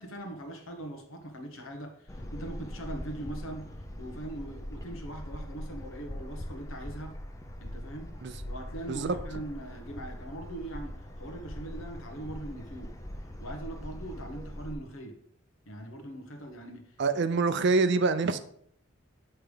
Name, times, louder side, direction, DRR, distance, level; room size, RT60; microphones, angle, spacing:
voice 1, 0.0-3.7 4.0-7.1 7.6-8.1 8.4-12.9 13.4-15.2 15.7-17.0, right 1 dB, 70° left, 4 dB, 1.2 m, -41 dB
sound 1, 2.1-14.7, equal, 15° left, 0.6 m, -41 dB
voice 2, 17.0-18.4, right 4 dB, 55° right, 12 dB, 0.5 m, -25 dB
7.8 x 3.4 x 5.0 m, 0.66 s
head